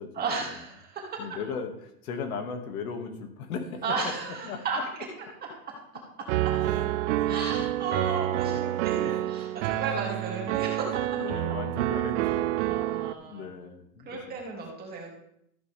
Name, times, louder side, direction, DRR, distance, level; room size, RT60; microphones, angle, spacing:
voice 1, 0.1-1.2 3.8-4.8 5.7-5.8 7.3-11.2 11.5-11.6 12.5-13.5 14.1-15.1, right 4 dB, 20° right, -2 dB, 2.6 m, -34 dB
voice 2, 1.2-3.8 4.4-4.6 6.6-6.9 7.1-7.4 7.8-8.0 8.3-8.6 9.1-9.2 11.2-14.4, left 5 dB, 75° left, 5 dB, 2.3 m, -38 dB
Piano, 6.3-13.1, right 14 dB, 60° right, 0.5 m, -28 dB
14.5 x 10.0 x 3.5 m, 0.76 s
supercardioid pair, 155°, 44 cm